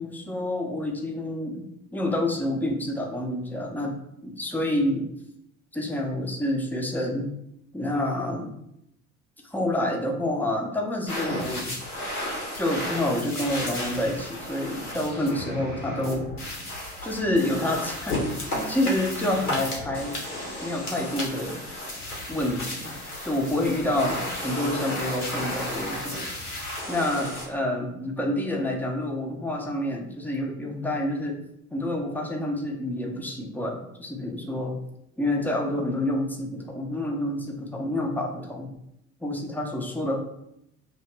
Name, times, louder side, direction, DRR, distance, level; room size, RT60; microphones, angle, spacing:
voice 1, 0.0-1.6 1.9-5.1 5.7-7.3 7.7-8.5 9.4-11.7 12.6-16.3 17.0-20.2 20.6-21.6 22.3-22.9 23.2-26.5 26.9-31.4 31.7-34.8 35.2-38.7 39.2-40.2, left 1 dB, 5° left, 1 dB, 0.6 m, -28 dB
sound 1, 11.1-27.5, left 1 dB, 85° left, 1.0 m, -33 dB
2.9 x 2.8 x 4.4 m, 0.79 s
figure-of-eight pair, 60°, 44 cm